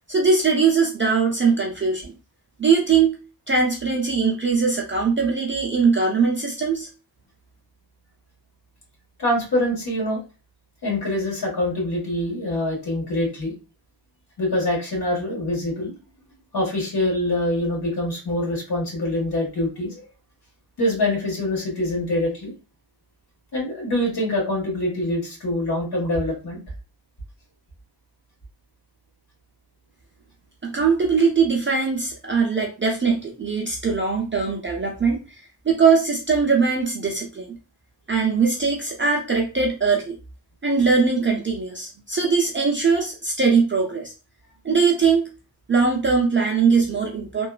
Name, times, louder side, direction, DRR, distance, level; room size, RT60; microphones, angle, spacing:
voice 1, 0.1-2.1 2.6-3.2 3.5-6.9 30.6-37.5 38.1-40.2 40.6-44.1 44.6-45.3 45.7-47.5, right 5 dB, 30° right, -1 dB, 0.4 m, -21 dB
voice 2, 9.2-10.2 10.8-13.5 14.4-15.9 16.5-20.0 20.8-22.5 23.5-26.6, left 1 dB, 55° left, -3 dB, 1.5 m, -24 dB
2.9 x 2.3 x 2.3 m, 0.32 s
wide cardioid pair, 175°, 45 cm